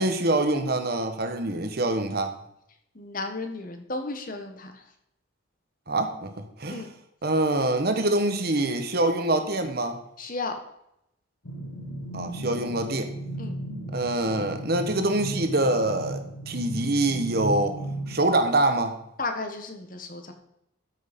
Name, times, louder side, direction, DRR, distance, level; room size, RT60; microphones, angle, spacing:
voice 1, 0.0-2.3 5.9-6.3 6.6-6.9 7.2-10.0 12.1-13.1 13.9-17.8 18.1-19.0, right 2 dB, 50° right, 7 dB, 1.2 m, -25 dB
voice 2, 2.9-4.8 6.7-6.9 10.2-10.5 13.4-13.6 19.2-20.3, left 3 dB, 45° left, 6 dB, 1.4 m, -34 dB
sound 1, 11.5-18.2, right 1 dB, 90° left, 1.6 m, -35 dB
13.0 x 6.4 x 5.3 m, 0.79 s
head